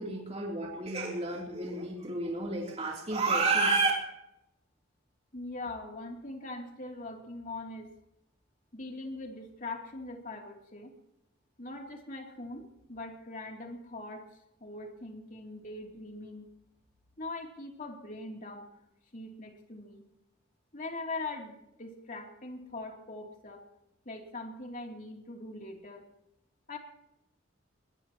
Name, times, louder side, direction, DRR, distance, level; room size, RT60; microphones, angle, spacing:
voice 1, 0.0-3.9, right 3 dB, 35° right, -2 dB, 3.4 m, -30 dB
voice 2, 5.3-7.9 8.7-10.9 11.6-14.3 14.6-16.5 17.2-18.7 19.1-20.0 20.7-23.6 24.0-26.1 26.7-26.8, left 2 dB, 45° left, 1 dB, 3.1 m, -41 dB
22.0 x 20.5 x 3.1 m, 0.86 s
head